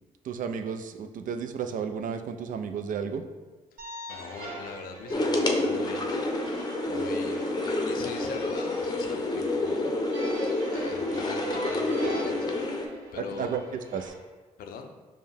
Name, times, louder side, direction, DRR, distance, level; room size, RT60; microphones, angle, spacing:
voice 1, 0.2-3.2 13.2-14.1, right 6 dB, 60° right, 7 dB, 0.4 m, -33 dB
sound 1, 3.8-14.1, right 2 dB, 80° right, 1.0 m, -42 dB
voice 2, 4.1-6.6 6.8-10.1 10.7-12.9 13.1-13.5 14.6-14.9, left 6 dB, 75° left, 5 dB, 0.5 m, -42 dB
sound 2, 5.1-12.9, left 2 dB, 30° left, 0.6 m, -28 dB
5.2 x 2.2 x 3.3 m, 1.3 s
supercardioid pair, 60°, 15 cm